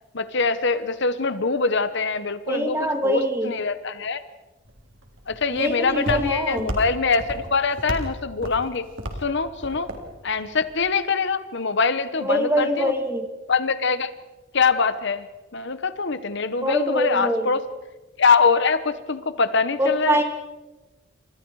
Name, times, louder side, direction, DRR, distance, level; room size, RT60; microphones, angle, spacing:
voice 1, 0.1-2.8 3.0-4.2 5.3-8.9 9.2-9.9 10.2-12.9 13.5-14.1 14.5-15.3 15.5-17.6 18.2-20.2, left 4 dB, 55° left, 12 dB, 1.0 m, -23 dB
voice 2, 2.5-3.5 5.5-6.7 12.2-13.3 16.6-17.5 19.8-20.2, equal, 10° right, 5 dB, 2.4 m, -24 dB
Walk footsteps, 4.7-10.8, equal, 60° right, 3.8 m, -35 dB
29.5 x 26.5 x 4.8 m, 1.1 s
head